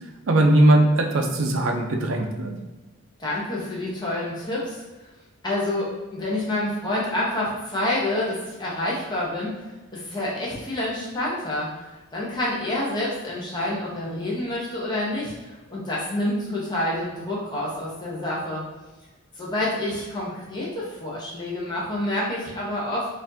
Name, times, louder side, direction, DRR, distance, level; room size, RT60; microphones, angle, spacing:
voice 1, 0.3-2.5, right 1 dB, 60° right, 3 dB, 0.5 m, -19 dB
voice 2, 3.2-4.8 5.4-9.6 9.9-11.7 12.1-18.6 19.4-23.1, left 1 dB, 20° left, -6 dB, 0.8 m, -28 dB
4.1 x 2.6 x 2.7 m, 1.2 s
head